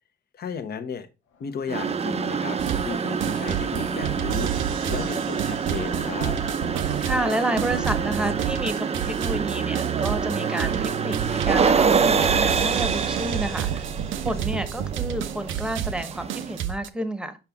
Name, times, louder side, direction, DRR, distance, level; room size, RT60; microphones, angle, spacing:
voice 1, 0.3-1.1 1.4-6.4, left 7 dB, 55° left, 0.8 m, -34 dB
Race car auto racing, 1.3-12.3, left 5 dB, 90° left, 1.1 m, -47 dB
sound 1, 1.7-16.6, right 6 dB, 30° right, 0.5 m, -27 dB
sound 2, 2.6-2.9 3.2-16.9, right 10 dB, 75° right, 0.6 m, -30 dB
voice 2, 7.0-13.8 14.2-17.4, right 1 dB, 5° right, 0.9 m, -30 dB
5.8 x 5.6 x 3.5 m
cardioid pair, 90°, 20 cm